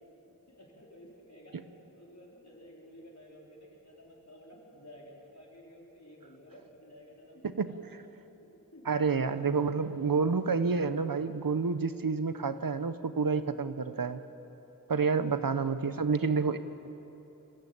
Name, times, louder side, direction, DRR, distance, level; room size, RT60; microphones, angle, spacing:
voice 1, 0.3-1.5 1.9-7.9 8.4-9.6, equal, 55° left, -3 dB, 4.5 m, -54 dB
voice 2, 8.9-14.2 14.9-16.6, right 5 dB, 85° right, 12 dB, 0.8 m, -29 dB
22.5 x 15.0 x 8.7 m, 3.0 s
wide cardioid pair, 40°, 33 cm